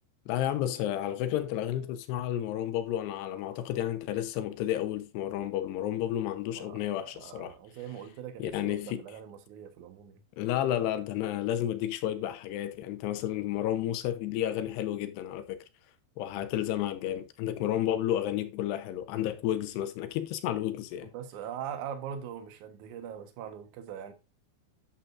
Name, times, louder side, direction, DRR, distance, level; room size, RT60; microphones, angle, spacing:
voice 1, 0.3-7.5 8.4-9.0 10.4-15.6 16.2-21.1, left 12 dB, 75° left, 2.8 m, -31 dB
voice 2, 6.5-10.2 21.0-24.1, right 8 dB, 65° right, 1.9 m, -42 dB
11.5 x 7.3 x 2.5 m
omnidirectional pair, 5.1 m